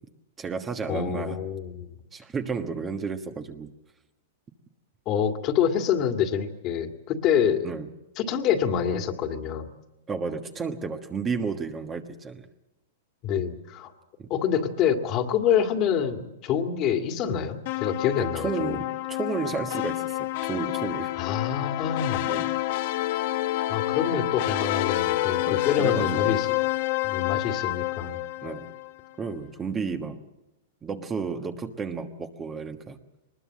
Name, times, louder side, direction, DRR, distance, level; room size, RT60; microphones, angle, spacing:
voice 1, 0.4-1.4 2.1-3.7 7.6-7.9 10.1-12.5 14.2-14.3 18.2-21.1 22.3-22.5 25.4-26.4 28.4-28.7 29.2-30.2 30.8-33.0, right 5 dB, 20° right, 6 dB, 1.3 m, -32 dB
voice 2, 0.9-1.9 5.1-7.7 8.2-9.7 13.2-13.9 14.3-18.8 21.1-22.3 23.7-26.5 27.0-28.2, left 8 dB, 35° left, 5 dB, 2.1 m, -26 dB
sound 1, 17.7-28.9, left 17 dB, 55° left, 1.2 m, -28 dB
23.0 x 20.5 x 7.5 m, 0.96 s
hypercardioid pair, 140°, 0 cm